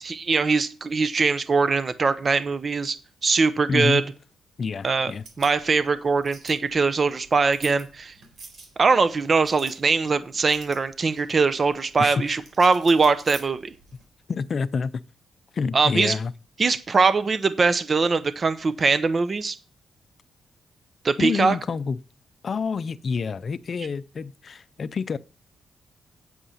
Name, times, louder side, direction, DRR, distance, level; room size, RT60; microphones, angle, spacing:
voice 1, 0.0-3.0 3.2-4.0 4.8-5.1 5.4-8.1 8.8-13.7 15.7-16.1 16.6-19.6 21.0-21.6, right 4 dB, 40° right, 0.7 m, -22 dB
voice 2, 3.7-4.0 4.6-5.2 12.0-12.2 14.3-15.0 15.5-16.3 21.2-22.0 22.4-25.2, left 5 dB, 50° left, 0.5 m, -27 dB
sound 1, 5.1-14.0, right 4 dB, 65° right, 3.7 m, -48 dB
8.5 x 8.2 x 5.7 m
cardioid pair, 95°, 0 cm